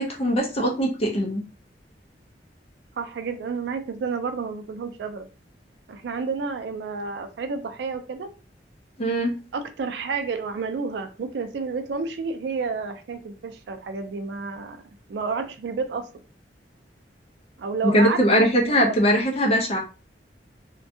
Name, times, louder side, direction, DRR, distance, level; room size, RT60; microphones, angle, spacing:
voice 1, 0.0-1.4 9.0-9.4 17.8-19.8, equal, 35° left, 1 dB, 0.5 m, -21 dB
voice 2, 3.0-5.3 5.9-8.3 9.5-14.8 15.1-16.1 17.6-18.9, right 4 dB, 70° right, 8 dB, 0.3 m, -30 dB
2.6 x 2.2 x 2.6 m, 0.34 s
head